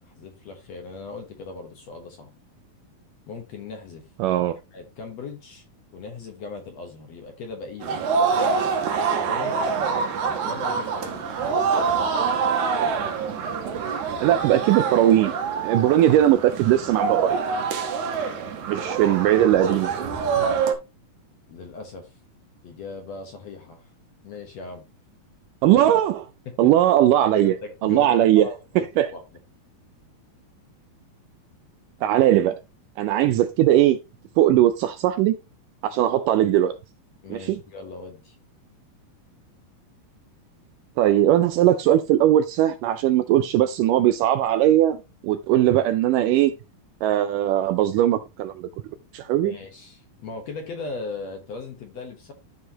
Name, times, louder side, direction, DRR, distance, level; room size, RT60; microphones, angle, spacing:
voice 1, 0.0-2.3 3.3-4.1 4.7-5.7 5.9-8.0 8.3-8.7 9.1-9.6 10.3-11.5 21.5-22.1 22.6-23.9 24.2-24.9 25.7-25.8 26.5-26.7 27.4-29.2 37.2-38.4 49.4-52.3, left 4 dB, 60° left, 1.9 m, -38 dB
voice 2, 4.2-4.6 14.2-15.3 15.6-17.4 18.7-20.0 25.6-26.2 26.6-27.5 27.8-28.5 28.8-29.1 32.0-32.6 33.0-34.0 34.4-35.4 35.8-36.8 37.3-37.6 41.0-45.0 45.2-46.5 47.0-48.7 49.1-49.5, right 12 dB, 80° right, 2.0 m, -19 dB
sound 1, 7.8-20.7, right 5 dB, 65° right, 2.3 m, -25 dB
13.0 x 4.8 x 2.9 m
omnidirectional pair, 4.2 m